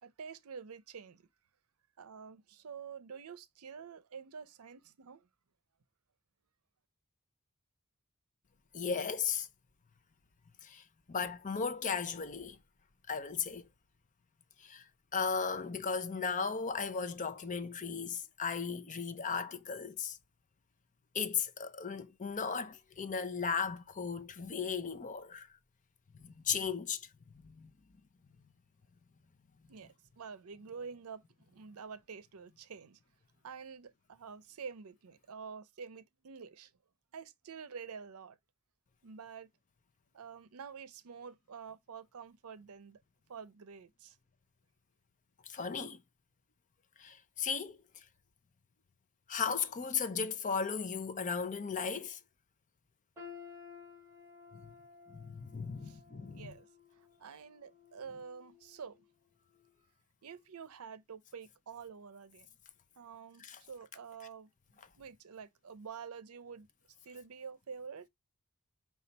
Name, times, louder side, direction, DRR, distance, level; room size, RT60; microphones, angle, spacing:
voice 1, 0.0-1.3 2.0-5.3 29.7-33.0 33.4-36.7 37.1-38.4 39.0-39.5 40.1-43.0 43.3-44.2 55.8-56.0 56.3-56.7 57.2-59.0 60.2-62.5 63.0-64.5 65.0-66.7 67.0-68.1, right 6 dB, 85° right, 0.6 m, -48 dB
voice 2, 8.7-9.5 10.6-12.6 13.1-13.6 14.6-14.8 15.1-20.2 21.1-25.5 26.2-27.1 27.4-27.7 45.5-46.0 47.0-47.8 49.3-52.2 54.5-54.6 55.1-56.5 63.4-63.6, left 6 dB, 35° left, 0.5 m, -36 dB
sound 1, 53.2-59.1 59.5-59.7 60.5-60.6, left 6 dB, 15° right, 1.5 m, -55 dB
5.3 x 2.4 x 3.9 m
head